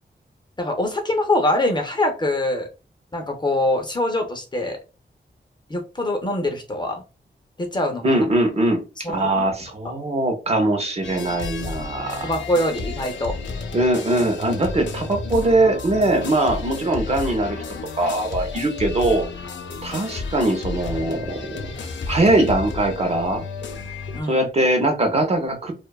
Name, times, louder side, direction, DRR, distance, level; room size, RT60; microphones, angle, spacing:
voice 1, 0.6-2.7 3.1-4.8 5.7-7.0 7.6-8.2 9.0-9.4 12.2-13.4 24.1-24.5, left 1 dB, 25° left, 4 dB, 0.4 m, -24 dB
voice 2, 8.0-8.8 9.1-12.3 13.7-17.6 18.0-19.2 19.8-21.7 22.1-23.4 24.3-25.7, right 2 dB, 35° right, 4 dB, 0.5 m, -21 dB
sound 1, 11.0-24.2, left 4 dB, 80° left, 0.4 m, -32 dB
2.6 x 2.1 x 2.2 m, 0.31 s
wide cardioid pair, 170°, 19 cm